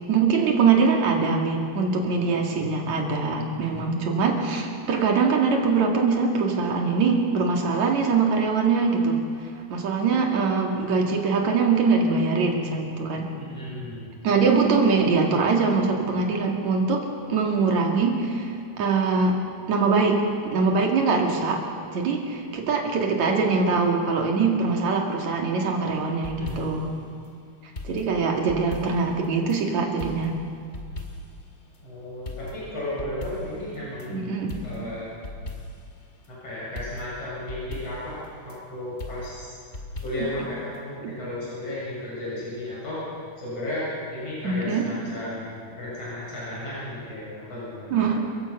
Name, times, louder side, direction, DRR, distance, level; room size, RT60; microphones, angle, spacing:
voice 1, 0.1-9.2 9.7-13.3 14.2-19.4 19.7-20.2 20.5-21.6 21.9-27.0 27.8-30.4 34.1-34.6 41.0-41.1 44.4-44.9 47.9-48.2, right 4 dB, 70° right, 1 dB, 3.6 m, -23 dB
voice 2, 3.6-3.9 13.4-14.1 26.4-26.7 31.8-35.1 36.3-39.5 40.0-43.0 43.4-47.9, left 1 dB, 55° left, -8 dB, 8.5 m, -34 dB
sound 1, 25.9-26.9 27.7-29.6 30.0-31.4 31.7-31.8 32.2-34.1 34.5-35.9 36.2-36.3 36.7-38.6 39.0-40.4 40.7-40.8, left 2 dB, 25° left, 2.1 m, -38 dB
29.5 x 15.0 x 5.9 m, 2.3 s
omnidirectional pair, 3.4 m